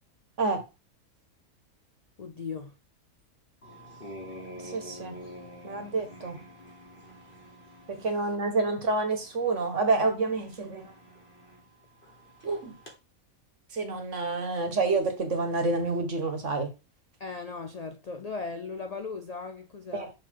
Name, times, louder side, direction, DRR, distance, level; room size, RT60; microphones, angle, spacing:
voice 1, 2.2-2.7 17.2-20.1, left 4 dB, 60° left, 0.4 m, -37 dB
sound 1, 3.6-12.9, left 1 dB, 40° left, 1.6 m, -48 dB
voice 2, 4.6-5.2 5.6-6.4 7.9-10.9 12.4-12.7 13.7-16.7 19.9-20.1, right 3 dB, 60° right, 1.7 m, -28 dB
6.1 x 4.2 x 4.6 m
omnidirectional pair, 1.5 m